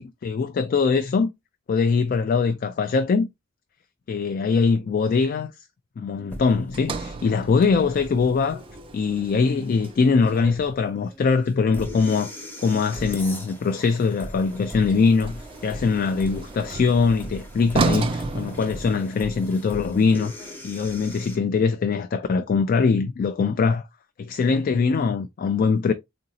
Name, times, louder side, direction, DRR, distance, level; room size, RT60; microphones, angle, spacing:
voice 1, 0.0-1.3 1.7-3.3 4.1-5.5 6.0-8.6 8.9-12.3 12.6-23.8 24.2-25.9, left 5 dB, 45° left, 0.3 m, -22 dB
sound 1, 6.3-21.4, equal, 10° left, 0.8 m, -40 dB
Sliding door, 6.7-11.0 14.5-19.4, right 3 dB, 25° right, 0.4 m, -32 dB
3.8 x 2.6 x 2.7 m
head